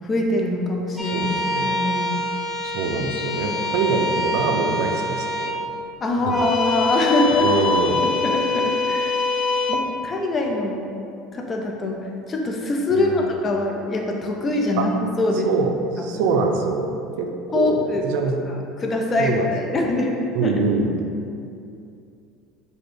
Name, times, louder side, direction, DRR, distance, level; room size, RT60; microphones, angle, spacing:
voice 1, 0.0-1.3 1.6-2.1 6.0-7.5 8.0-9.1 9.7-10.8 11.3-12.0 12.3-14.9 15.2-15.5 16.0-16.4 17.5-18.1 18.5-20.5, left 2 dB, 30° left, 0 dB, 0.6 m, -23 dB
voice 2, 0.9-1.7 2.6-5.7 6.3-6.4 7.4-8.0 12.9-13.3 14.8-14.9 15.4-16.9 17.2-17.3 17.5-18.3 19.2-19.8 20.3-20.9, right 4 dB, 80° right, 3 dB, 0.4 m, -24 dB
sound 1, 1.0-5.5 6.2-9.7, left 2 dB, 15° left, 1.0 m, -24 dB
5.0 x 2.2 x 4.6 m, 2.6 s
supercardioid pair, 100°, 0 cm